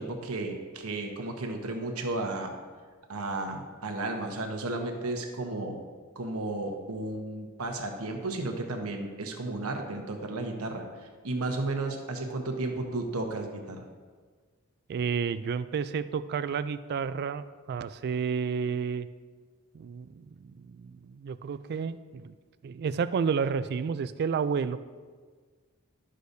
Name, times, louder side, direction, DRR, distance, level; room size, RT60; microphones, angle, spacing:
voice 1, 0.0-2.5 3.1-5.8 6.1-10.8 11.2-13.8, right 2 dB, 90° right, 3 dB, 1.0 m, -33 dB
voice 2, 14.9-19.1 19.7-22.4 22.6-24.8, right 6 dB, 50° right, 14 dB, 0.3 m, -31 dB
11.0 x 6.5 x 2.7 m, 1.5 s
head